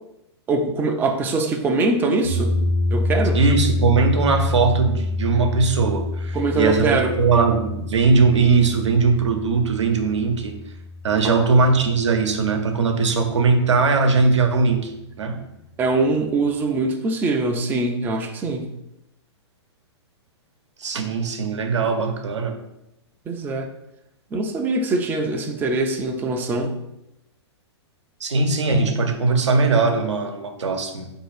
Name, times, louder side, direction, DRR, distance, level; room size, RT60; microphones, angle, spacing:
voice 1, 0.5-2.6 2.9-3.4 6.3-7.1 11.2-11.3 15.8-18.7 23.3-23.7 24.3-26.7, right 3 dB, 15° right, 3 dB, 0.4 m, -23 dB
sound 1, 2.2-12.5, left 2 dB, 90° left, 0.7 m, -27 dB
voice 2, 3.3-10.6 11.0-15.4 20.8-22.6 28.2-31.1, right 4 dB, 85° right, 5 dB, 0.7 m, -20 dB
4.1 x 2.7 x 4.8 m, 0.85 s
hypercardioid pair, 125°, 15 cm